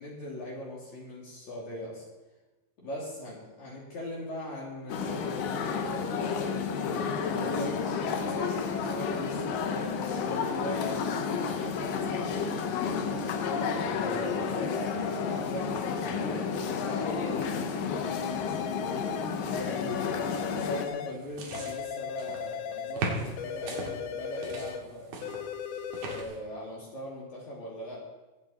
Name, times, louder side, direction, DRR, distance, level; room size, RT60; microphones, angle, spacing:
voice 1, 0.0-2.0 2.8-7.8 8.0-10.1 10.4-11.0 11.4-13.2 13.7-19.1 19.5-25.1 25.7-28.0, left 1 dB, 55° left, -5 dB, 4.0 m, -40 dB
sound 1, 4.9-20.9, left 5 dB, 70° left, 2.7 m, -31 dB
sound 2, 18.0-19.3 19.7-21.2 21.5-23.0 23.4-24.9 25.2-26.2, left 8 dB, 85° left, 2.7 m, -37 dB
sound 3, 21.1-22.5 23.0-23.9 24.4-26.4, right 3 dB, 85° right, 4.0 m, -38 dB
22.5 x 9.0 x 4.3 m, 1.1 s
omnidirectional pair, 4.2 m